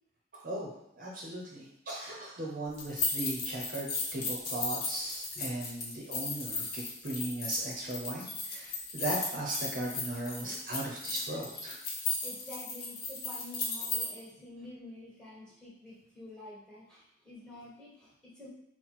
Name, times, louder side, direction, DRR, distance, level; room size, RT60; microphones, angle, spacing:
voice 1, 0.3-0.7 1.0-11.8, right 1 dB, 50° right, -3 dB, 0.7 m, -37 dB
sound 1, 2.7-14.1, left 3 dB, 55° left, 0.9 m, -36 dB
voice 2, 12.2-18.5, left 1 dB, 5° left, -7 dB, 1.5 m, -49 dB
4.2 x 2.1 x 4.2 m, 0.80 s
head